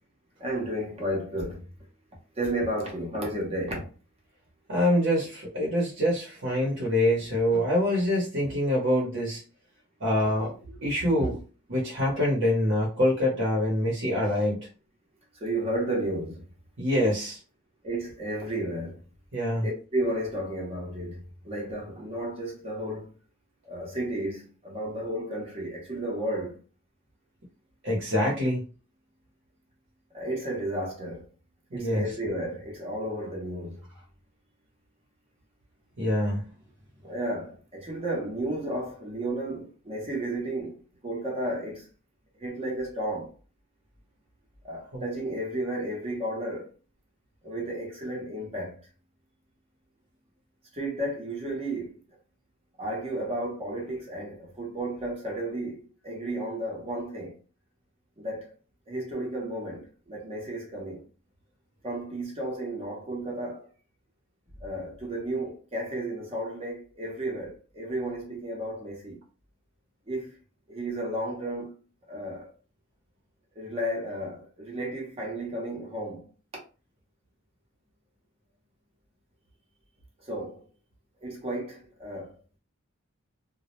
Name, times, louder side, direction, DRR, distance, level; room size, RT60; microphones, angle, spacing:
voice 1, 0.4-1.7 2.3-3.9 15.3-16.5 17.8-19.0 19.6-23.1 23.7-26.6 30.1-31.3 31.7-33.8 37.0-41.9 42.4-43.3 44.6-46.7 47.4-48.8 50.7-52.0 52.8-57.4 58.2-58.5 58.9-61.0 61.8-63.7 64.6-69.2 70.1-70.4 70.7-71.7 72.1-72.5 73.5-76.3 80.2-80.6 81.2-82.4, right 1 dB, 30° right, 0.8 m, -33 dB
voice 2, 4.7-9.4 10.0-11.4 11.7-14.7 16.8-17.4 19.3-19.7 27.8-28.6 31.7-32.0 36.0-36.5 44.9-45.0, left 1 dB, 60° right, 0.8 m, -25 dB
2.2 x 2.0 x 3.0 m
head